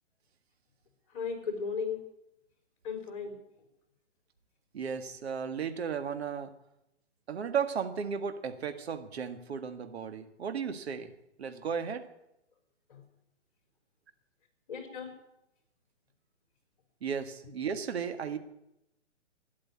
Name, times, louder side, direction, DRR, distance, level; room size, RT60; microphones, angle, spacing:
voice 1, 1.1-2.0 2.8-3.4 12.9-13.0 14.7-15.1, left 5 dB, 45° left, 5 dB, 4.5 m, -35 dB
voice 2, 4.7-6.5 7.3-11.1 11.4-12.0 17.0-18.4, right 6 dB, 60° right, 9 dB, 1.8 m, -35 dB
13.0 x 11.0 x 9.5 m, 0.85 s
hypercardioid pair, 160°, 35 cm